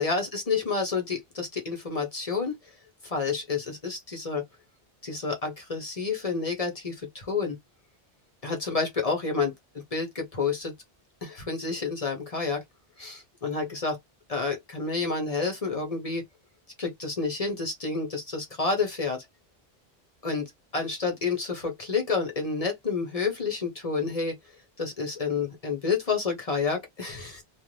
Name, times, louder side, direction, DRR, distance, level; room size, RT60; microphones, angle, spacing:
voice 1, 0.0-2.5 3.0-4.4 5.0-7.6 8.4-9.5 9.9-10.7 11.2-12.6 13.0-14.0 14.3-16.2 16.8-19.2 20.2-24.4 24.8-27.4, left 4 dB, 40° left, 0.9 m, -29 dB
2.5 x 2.4 x 3.0 m
omnidirectional pair, 1.0 m